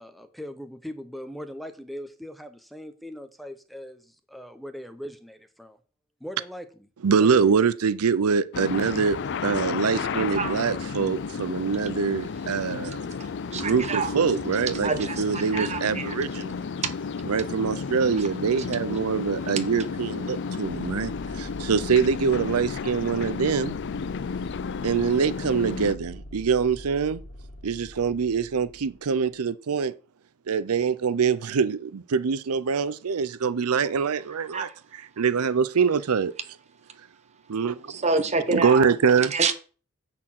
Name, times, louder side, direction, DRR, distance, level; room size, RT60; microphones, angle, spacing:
voice 1, 0.0-5.8 6.2-6.7 7.1-7.6, equal, ahead, 0.7 m, -40 dB
voice 2, 7.0-13.1 13.5-16.6 17.3-23.8 24.8-27.2 27.6-29.9 30.5-34.7 35.2-36.3 37.5-38.0 38.5-39.3, right 6 dB, 90° right, 0.5 m, -24 dB
sound 1, 8.5-26.0, left 5 dB, 55° left, 0.4 m, -32 dB
voice 3, 13.5-14.1 14.8-16.2 16.8-16.9 34.5-34.7 37.9-38.9 39.3-39.5, right 4 dB, 30° right, 1.1 m, -27 dB
sound 2, 20.6-29.3, left 1 dB, 40° left, 1.8 m, -43 dB
9.8 x 4.4 x 7.6 m
head